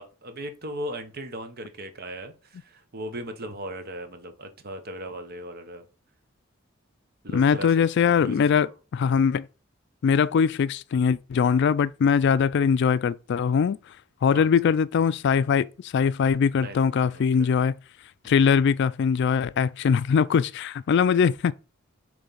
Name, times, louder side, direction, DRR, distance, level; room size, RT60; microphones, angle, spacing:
voice 1, 0.0-5.8 7.2-7.7 8.1-8.5 12.5-12.6 14.3-14.5 16.6-16.8 17.0-17.5 18.2-18.5, right 1 dB, 50° right, 1.0 m, -38 dB
voice 2, 7.3-9.5 10.0-13.8 14.2-17.8 18.2-21.5, left 6 dB, 60° left, 0.3 m, -22 dB
7.0 x 3.3 x 5.5 m
head